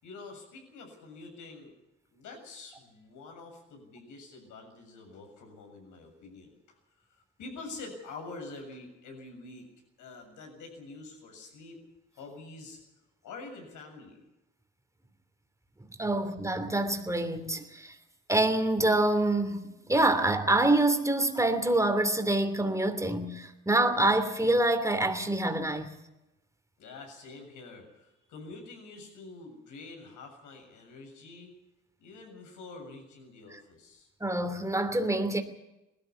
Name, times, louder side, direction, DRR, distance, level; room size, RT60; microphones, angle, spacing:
voice 1, 0.0-1.8 2.1-6.6 7.1-9.7 10.0-11.8 12.1-12.8 13.2-14.2 26.8-31.5 32.0-34.1, left 3 dB, 85° left, 7.3 m, -46 dB
voice 2, 16.0-18.0 18.3-25.9 34.2-35.4, right 2 dB, 10° right, 2.8 m, -26 dB
20.0 x 13.5 x 9.7 m
cardioid pair, 90°, 30 cm